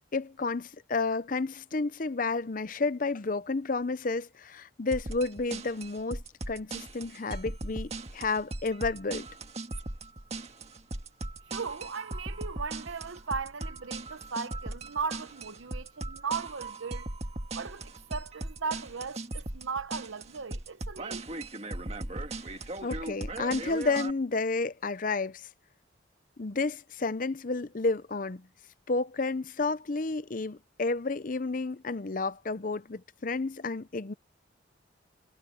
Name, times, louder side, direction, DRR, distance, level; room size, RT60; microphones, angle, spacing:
voice 1, 0.1-9.3 22.8-25.5 26.4-28.5 28.9-34.1, left 3 dB, 45° left, 0.6 m, -31 dB
sound 1, 4.9-24.1, right 2 dB, 35° right, 1.7 m, -38 dB
voice 2, 11.5-17.1 17.5-21.2, right 5 dB, 90° right, 0.9 m, -37 dB
head